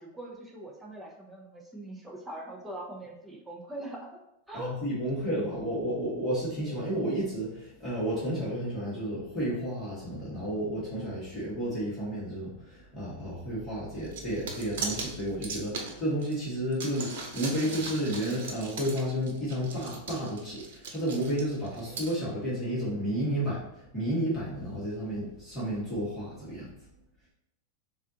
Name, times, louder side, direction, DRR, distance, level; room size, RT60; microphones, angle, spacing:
voice 1, 0.0-4.2 4.5-4.8 14.1-14.3, right 1 dB, 5° right, -1 dB, 0.7 m, -42 dB
voice 2, 4.5-26.7, right 1 dB, 15° left, -9 dB, 1.5 m, -32 dB
sound 1, 14.0-16.3 16.7-22.2, right 4 dB, 75° right, 1.0 m, -38 dB
7.0 x 2.5 x 2.8 m, 0.83 s
supercardioid pair, 170°, 0 cm